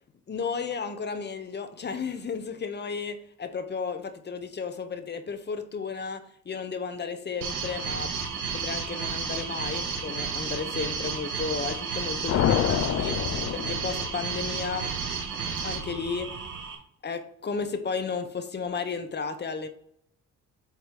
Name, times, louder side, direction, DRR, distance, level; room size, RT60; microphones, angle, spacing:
voice 1, 0.3-8.1 8.5-13.2 13.5-14.9 15.6-16.3 17.0-19.7, left 5 dB, 35° left, 0.9 m, -33 dB
sound 1, 7.4-16.7, right 6 dB, 90° right, 1.5 m, -32 dB
sound 2, 12.3-14.5, left 10 dB, 55° left, 0.6 m, -27 dB
8.2 x 3.0 x 5.1 m
cardioid pair, 90°, 30 cm